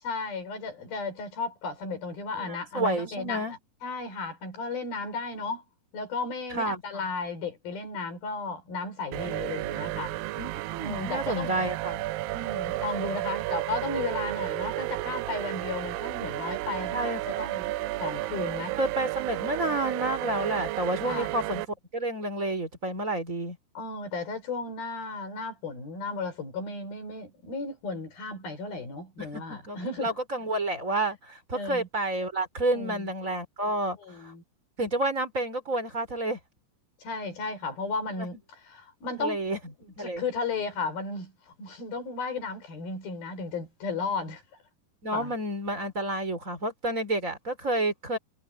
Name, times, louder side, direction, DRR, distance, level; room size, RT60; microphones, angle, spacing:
voice 1, 0.0-5.6 5.9-10.2 10.8-11.5 12.3-17.7 18.0-18.8 21.1-21.3 23.8-30.1 31.5-31.9 32.7-33.1 34.0-34.4 37.0-38.4 38.7-39.4 40.0-44.4 45.1-45.3, left 3 dB, 75° left, 7.5 m, -34 dB
voice 2, 2.3-3.6 6.5-7.0 10.4-12.0 16.9-17.5 18.8-23.6 29.2-34.3 34.8-36.4 38.2-38.3 39.2-39.6 40.0-40.2 45.0-48.2, right 1 dB, 20° right, 4.8 m, -30 dB
sound 1, 9.1-21.6, right 16 dB, 80° right, 2.3 m, -32 dB
omnidirectional pair, 4.3 m